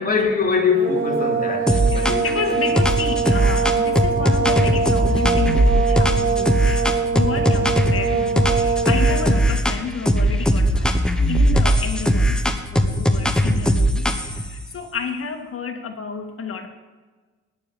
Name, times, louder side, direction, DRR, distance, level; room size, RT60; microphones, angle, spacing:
voice 1, 0.0-2.6, left 5 dB, 30° left, 3.2 m, -23 dB
sound 1, 0.7-9.5, right 6 dB, 40° right, 3.0 m, -23 dB
sound 2, 1.7-2.4 2.8-8.0 8.4-9.8 10.1-14.5, equal, 5° left, 1.3 m, -19 dB
voice 2, 1.9-6.9 7.1-12.4 12.7-16.7, left 5 dB, 45° left, 2.4 m, -30 dB
19.0 x 7.2 x 7.0 m
cardioid pair, 90°, 30 cm